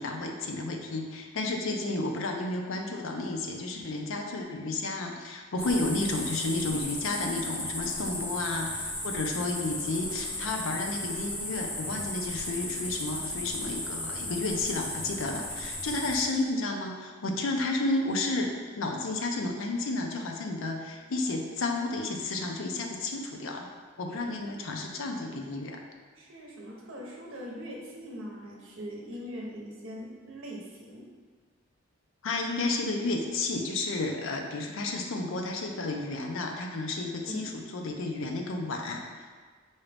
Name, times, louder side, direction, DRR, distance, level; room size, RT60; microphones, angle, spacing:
voice 1, 0.0-23.7 24.0-25.8 32.2-39.3, left 2 dB, 70° left, 2 dB, 0.5 m, -32 dB
sound 1, 5.6-16.2, left 1 dB, 10° left, 0.5 m, -35 dB
voice 2, 26.2-31.1 37.2-37.5, equal, 65° right, -2 dB, 0.8 m, -41 dB
4.8 x 2.7 x 3.4 m, 1.5 s
head